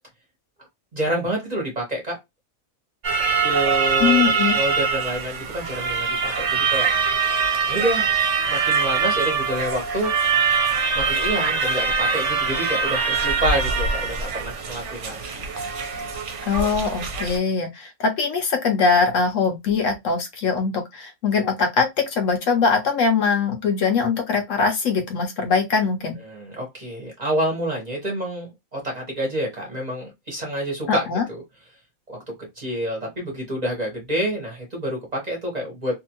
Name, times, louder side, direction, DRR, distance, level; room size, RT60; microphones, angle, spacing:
voice 1, 0.9-2.2 3.4-6.9 7.7-8.1 8.5-10.1 10.9-15.4 26.2-31.4 32.1-32.2 32.6-35.9, right 1 dB, 35° right, 0.9 m, -28 dB
sound 1, 3.0-17.4, right 5 dB, 60° right, 1.0 m, -23 dB
voice 2, 4.0-4.6 16.5-26.2 30.9-31.2, left 5 dB, 65° left, 0.9 m, -22 dB
2.7 x 2.5 x 2.8 m
omnidirectional pair, 1.5 m